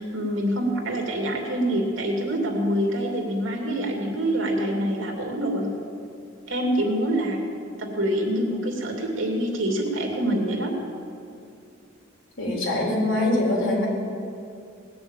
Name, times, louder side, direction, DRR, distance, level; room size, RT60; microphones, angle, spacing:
voice 1, 0.0-5.7 6.5-7.4 7.8-10.7, right 1 dB, 75° right, 0 dB, 2.8 m, -25 dB
voice 2, 12.4-13.9, left 1 dB, 85° left, -3 dB, 3.8 m, -23 dB
19.0 x 7.0 x 8.9 m, 2.5 s
head